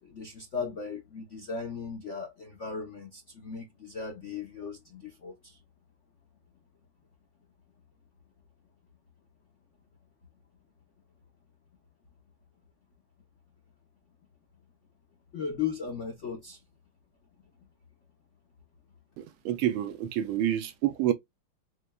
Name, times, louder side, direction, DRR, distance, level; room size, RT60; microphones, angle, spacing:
voice 1, 0.0-5.6 15.3-16.6, left 6 dB, 65° left, 0.7 m, -37 dB
voice 2, 19.2-21.1, right 12 dB, 75° right, 1.3 m, -28 dB
6.3 x 2.2 x 2.2 m
omnidirectional pair, 2.3 m